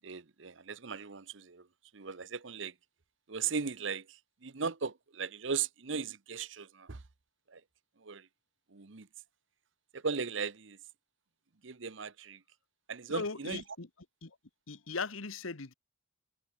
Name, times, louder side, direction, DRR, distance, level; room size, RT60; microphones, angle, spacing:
voice 1, 0.0-1.7 1.9-2.7 3.3-7.0 7.5-7.6 8.0-8.3 8.7-9.1 9.9-10.8 11.6-12.4 12.9-13.6, right 5 dB, 65° right, 0.9 m, -37 dB
voice 2, 13.1-13.9 14.2-14.3 14.7-15.7, left 4 dB, 85° left, 1.5 m, -38 dB
head